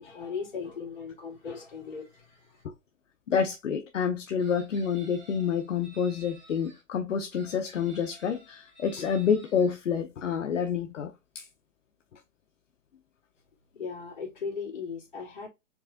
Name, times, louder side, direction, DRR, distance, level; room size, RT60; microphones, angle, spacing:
voice 1, 0.0-2.6 13.7-15.5, left 5 dB, 35° left, 2.5 m, -38 dB
voice 2, 3.3-11.5, left 7 dB, 65° left, 0.7 m, -28 dB
Chicken rooster, 4.4-6.8 7.3-9.7, right 1 dB, 35° right, 2.1 m, -53 dB
4.7 x 3.2 x 2.7 m
hypercardioid pair, 175°, 41 cm